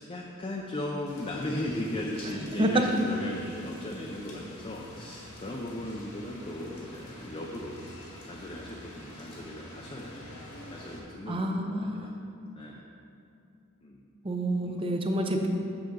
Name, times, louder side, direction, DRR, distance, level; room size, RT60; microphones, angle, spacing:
voice 1, 0.0-7.9 8.2-10.3 10.7-12.1 12.6-12.9 13.8-14.0 14.6-14.7, left 1 dB, 25° left, -1 dB, 0.5 m, -37 dB
sound 1, 1.1-11.0, left 1 dB, 80° left, 1.9 m, -47 dB
voice 2, 11.3-12.1 14.2-15.5, right 1 dB, 25° right, 3 dB, 0.6 m, -28 dB
7.8 x 7.0 x 3.8 m, 2.6 s
head